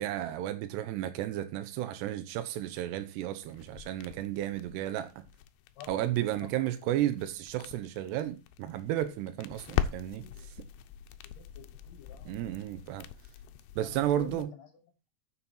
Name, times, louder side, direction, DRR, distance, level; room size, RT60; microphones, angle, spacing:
voice 1, 0.0-5.2 5.9-10.2 10.6-10.7 12.3-13.1 13.8-14.5, right 12 dB, 85° right, 3.0 m, -33 dB
sound 1, 3.4-14.4, left 10 dB, 85° left, 2.8 m, -41 dB
voice 2, 5.8-6.1 6.4-6.7 9.7-9.8 10.2-10.5 11.2-12.4 13.8-14.7, left 7 dB, 60° left, 2.7 m, -50 dB
9.7 x 7.2 x 4.4 m
omnidirectional pair, 4.8 m